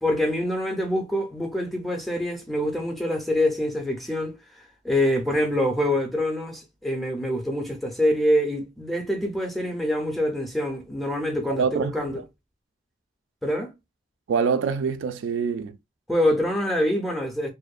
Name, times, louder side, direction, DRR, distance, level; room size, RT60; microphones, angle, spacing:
voice 1, 0.0-12.2 13.4-13.7 16.1-17.5, left 1 dB, ahead, 0.4 m, -25 dB
voice 2, 11.5-12.2 14.3-15.8, right 6 dB, 80° right, 0.3 m, -25 dB
2.6 x 2.1 x 2.3 m
head